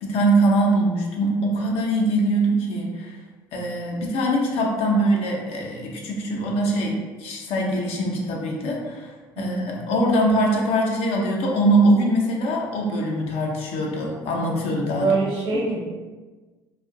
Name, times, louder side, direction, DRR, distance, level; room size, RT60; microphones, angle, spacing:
voice 1, 0.0-3.2 3.5-15.2 15.5-15.6, right 1 dB, 60° left, -1 dB, 0.7 m, -22 dB
voice 2, 9.4-9.7 15.0-15.8, right 3 dB, 50° right, -3 dB, 1.1 m, -24 dB
2.5 x 2.4 x 3.6 m, 1.3 s
hypercardioid pair, 65°, 12 cm